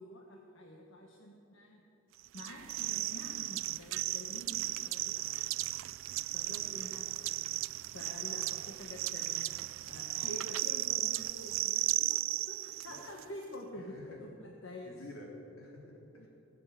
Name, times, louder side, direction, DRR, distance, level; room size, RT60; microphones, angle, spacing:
voice 1, 0.0-1.8 2.3-5.3 6.3-7.2 7.9-12.2 12.5-14.9 16.2-16.3, left 1 dB, 65° left, 0 dB, 1.3 m, -48 dB
sound 1, 2.3-13.2, right 17 dB, 65° right, 0.3 m, -35 dB
voice 2, 13.7-14.2 14.8-16.3, left 1 dB, 80° left, -2 dB, 3.7 m, -50 dB
19.5 x 7.6 x 7.9 m, 2.7 s
head